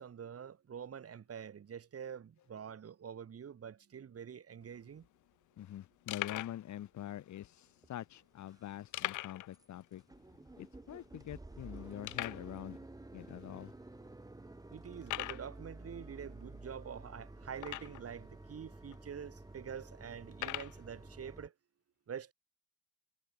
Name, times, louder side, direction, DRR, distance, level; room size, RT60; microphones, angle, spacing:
voice 1, 0.0-5.1 14.7-21.5 22.1-22.3, right 8 dB, 50° right, 5.0 m, -46 dB
sound 1, 4.6-4.7 4.9-5.1 5.6-5.7 6.1-6.6 7.4-7.5 8.9-9.5 9.8-9.9 10.3-10.4 11.0-11.1 12.0-12.5 13.3-13.4 14.0-14.1 15.0-15.5 17.6-18.1 18.9-19.0 20.3-20.8, left 16 dB, 85° left, 1.0 m, -40 dB
voice 2, 5.6-10.0 10.6-12.8 13.1-13.7, left 12 dB, 70° left, 1.6 m, -45 dB
sound 2, 7.8-7.9 8.4-8.8 9.1-9.2 9.5-9.7 9.9-21.5, right 2 dB, 10° right, 1.7 m, -52 dB
cardioid pair, 90°, 30 cm